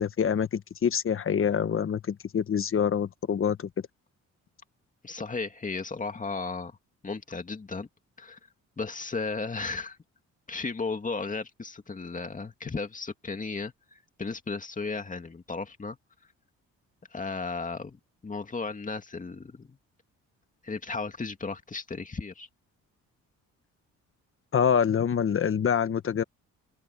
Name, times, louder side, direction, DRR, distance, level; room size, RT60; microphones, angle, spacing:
voice 1, 0.0-3.7 24.5-26.2, left 7 dB, 45° left, 1.4 m, -26 dB
voice 2, 5.0-6.8 7.0-7.9 8.2-8.4 8.8-10.0 10.5-16.0 17.1-19.8 20.6-22.5, left 4 dB, 25° left, 2.3 m, -35 dB
open air
cardioid pair, 90°, 30 cm